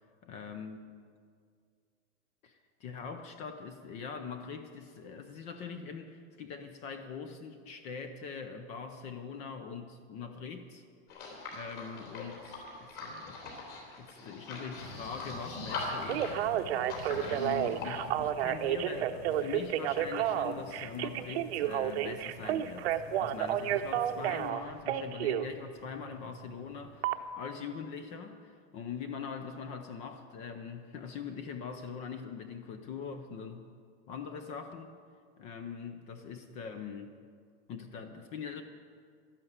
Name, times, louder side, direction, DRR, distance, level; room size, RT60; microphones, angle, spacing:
voice 1, 0.2-0.8 2.4-10.8 11.5-13.4 14.0-16.4 16.7-33.6 34.1-34.9 35.4-37.1 37.7-38.6, left 6 dB, 20° left, 8 dB, 0.4 m, -42 dB
sound 1, 11.1-17.9, left 3 dB, 40° left, 3.6 m, -41 dB
sound 2, 14.8-24.5, left 6 dB, 65° left, 1.2 m, -50 dB
Telephone, 15.9-25.5 27.0-27.2, right 11 dB, 65° right, 0.8 m, -31 dB
12.0 x 11.5 x 7.9 m, 2.1 s
supercardioid pair, 170°, 34 cm